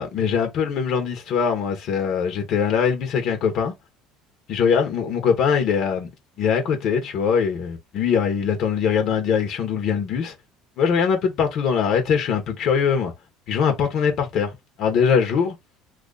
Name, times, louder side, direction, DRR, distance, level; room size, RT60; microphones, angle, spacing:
voice 1, 0.0-3.7 4.5-6.1 6.4-10.3 10.8-13.1 13.5-15.5, left 6 dB, 50° left, 1.0 m, -22 dB
2.9 x 2.5 x 4.0 m
cardioid pair, 145°, 0 cm